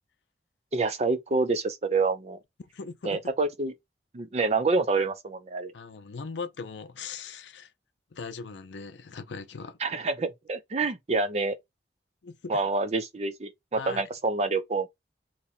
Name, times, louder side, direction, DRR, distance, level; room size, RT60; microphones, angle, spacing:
voice 1, 0.7-2.4 3.0-3.7 4.1-5.7 9.8-11.6 12.5-14.9, right 3 dB, 40° right, 0.5 m, -27 dB
voice 2, 2.7-3.2 5.7-7.7 8.1-9.8 12.2-12.6 13.8-14.0, left 4 dB, 90° left, 0.6 m, -39 dB
3.0 x 2.2 x 4.1 m
head